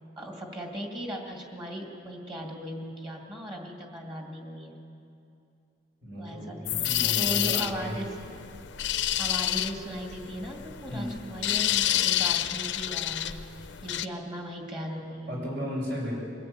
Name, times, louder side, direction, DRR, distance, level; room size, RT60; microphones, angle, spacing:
voice 1, 0.2-4.8 6.2-8.2 9.2-15.4, equal, 25° right, 1 dB, 2.4 m, -37 dB
voice 2, 6.0-7.9 10.9-11.1 15.3-16.1, equal, 70° right, -4 dB, 7.2 m, -35 dB
sound 1, 6.7-14.1, left 13 dB, 85° left, 0.6 m, -29 dB
22.0 x 15.5 x 8.7 m, 2.6 s
head